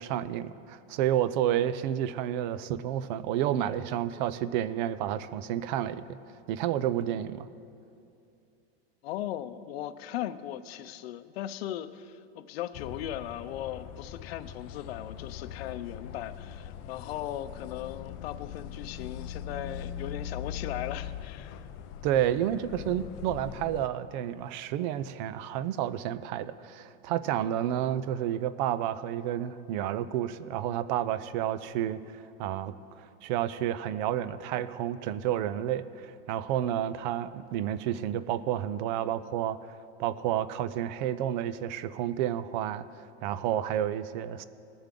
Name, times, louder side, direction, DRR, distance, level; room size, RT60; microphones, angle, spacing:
voice 1, 0.0-6.2 6.5-7.5 22.0-39.6 40.0-42.9 43.2-44.4, right 11 dB, 45° right, 14 dB, 0.5 m, -30 dB
voice 2, 9.0-21.6, left 12 dB, 70° left, 12 dB, 0.7 m, -38 dB
sound 1, 12.7-23.9, left 9 dB, 35° left, 0.4 m, -41 dB
21.0 x 7.0 x 3.8 m, 2.5 s
supercardioid pair, 155°, 32 cm